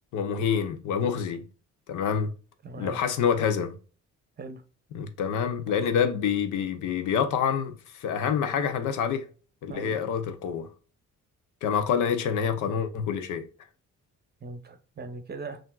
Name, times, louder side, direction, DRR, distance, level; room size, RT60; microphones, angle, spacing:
voice 1, 0.1-1.5 1.9-2.3 2.8-3.8 4.9-9.3 9.6-10.7 11.6-13.4, left 7 dB, 85° left, 0.7 m, -27 dB
voice 2, 2.6-3.0 4.4-4.6 9.7-10.0 14.4-15.6, right 3 dB, 35° right, 0.8 m, -39 dB
5.7 x 2.6 x 2.3 m
cardioid pair, 90°, 30 cm